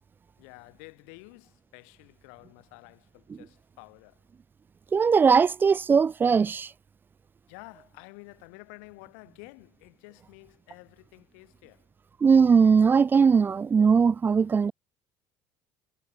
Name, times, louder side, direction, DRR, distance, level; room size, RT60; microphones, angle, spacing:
voice 1, 0.4-4.2 7.5-11.9, left 39 dB, 80° left, 4.6 m, -50 dB
voice 2, 4.9-6.7 12.2-14.7, right 6 dB, 25° right, 0.4 m, -20 dB
supercardioid pair, 85°, 8 cm